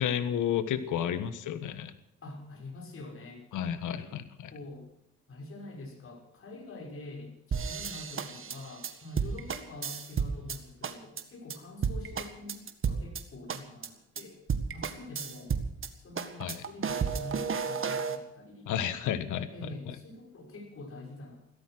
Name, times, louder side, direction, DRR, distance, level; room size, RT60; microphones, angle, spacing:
voice 1, 0.0-1.9 3.5-4.5 16.4-16.6 18.7-19.5, left 9 dB, 80° left, 12 dB, 1.5 m, -31 dB
voice 2, 2.2-3.5 4.0-4.2 4.5-4.9 5.3-14.4 14.7-15.6 16.0-18.7 19.5-21.4, left 2 dB, 45° left, 2 dB, 6.0 m, -45 dB
sound 1, 7.5-10.6 10.8-11.2 11.5-11.6 11.8-13.2 13.5-13.9 14.2-14.3 14.5-15.9 16.2-18.2, right 6 dB, 45° right, 1.8 m, -32 dB
16.5 x 13.5 x 6.2 m, 0.79 s
cardioid pair, 90°, 30 cm